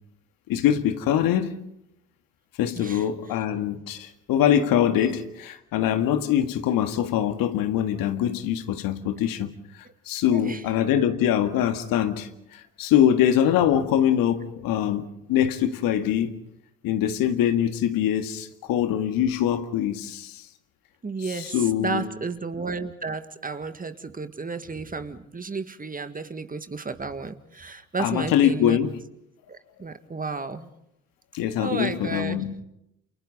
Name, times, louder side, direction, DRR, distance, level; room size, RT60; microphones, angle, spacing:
voice 1, 0.5-1.6 2.6-9.5 10.1-16.4 16.8-20.4 21.5-22.0 28.0-28.9 31.3-32.5, left 10 dB, 60° left, 1.9 m, -23 dB
voice 2, 2.7-3.1 10.3-10.7 21.0-28.8 29.5-30.7 31.6-32.4, right 4 dB, 20° right, 1.9 m, -32 dB
29.5 x 28.5 x 4.1 m
hypercardioid pair, 55°, 39 cm